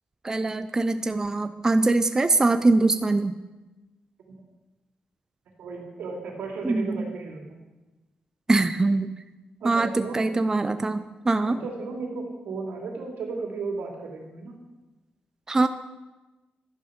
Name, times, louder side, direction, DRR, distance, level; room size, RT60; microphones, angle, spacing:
voice 1, 0.2-3.3 6.6-7.1 8.5-9.2 9.6-11.6 15.5-15.7, right 3 dB, 20° right, 10 dB, 0.5 m, -23 dB
voice 2, 5.6-7.6 9.6-10.2 11.5-14.5, right 4 dB, 85° right, 1 dB, 2.6 m, -34 dB
11.5 x 10.0 x 5.1 m, 1.1 s
cardioid pair, 110°, 3 cm